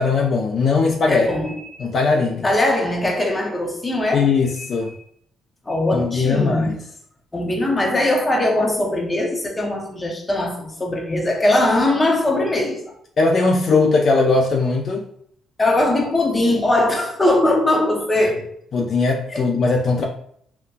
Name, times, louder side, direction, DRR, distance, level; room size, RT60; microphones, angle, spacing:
voice 1, 0.0-1.3 1.8-2.4 4.1-4.9 5.9-6.8 13.2-15.0 18.7-20.0, left 4 dB, 55° left, 0.4 m, -19 dB
voice 2, 1.1-1.7 2.4-4.3 4.6-4.7 5.7-6.8 7.3-12.9 15.6-18.6 19.3-19.4, left 1 dB, 20° left, 0.7 m, -20 dB
3.9 x 2.1 x 2.2 m
cardioid pair, 90°, 0 cm